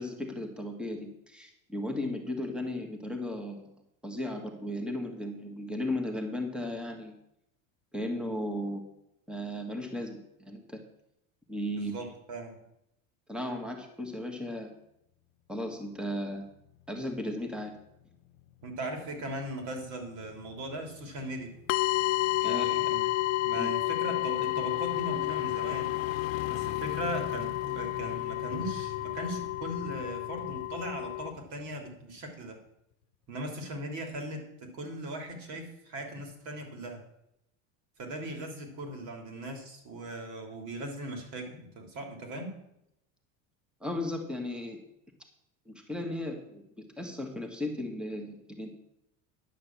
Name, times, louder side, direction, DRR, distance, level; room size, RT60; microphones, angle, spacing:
voice 1, 0.0-3.7 4.0-7.1 7.9-8.9 9.3-10.8 11.5-11.9 13.3-14.7 15.5-16.5 16.9-17.8 22.4-22.8 23.5-23.7 43.8-44.8 45.6-48.7, left 1 dB, ahead, 3 dB, 1.6 m, -35 dB
voice 2, 11.7-12.6 18.6-21.5 22.4-23.0 23.3-25.9 26.5-32.6 33.3-34.4 34.7-37.0 38.0-42.5, right 1 dB, 45° right, 3 dB, 3.1 m, -39 dB
sound 1, 15.8-32.3 32.7-32.8, left 11 dB, 75° left, 0.9 m, -46 dB
sound 2, 21.7-31.3, left 18 dB, 55° left, 0.6 m, -31 dB
10.5 x 6.2 x 7.2 m, 0.81 s
supercardioid pair, 130°, 40 cm